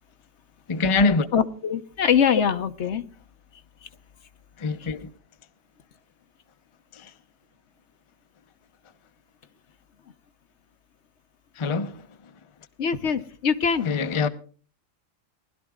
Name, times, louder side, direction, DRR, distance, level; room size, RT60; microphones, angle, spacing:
voice 1, 0.7-1.3 4.6-5.1 6.9-7.1 11.6-12.0 13.8-14.3, left 4 dB, 30° left, 0.7 m, -24 dB
voice 2, 1.3-3.0 4.8-4.9 12.8-13.9, left 7 dB, 65° left, 1.1 m, -23 dB
20.0 x 12.0 x 3.6 m
omnidirectional pair, 1.3 m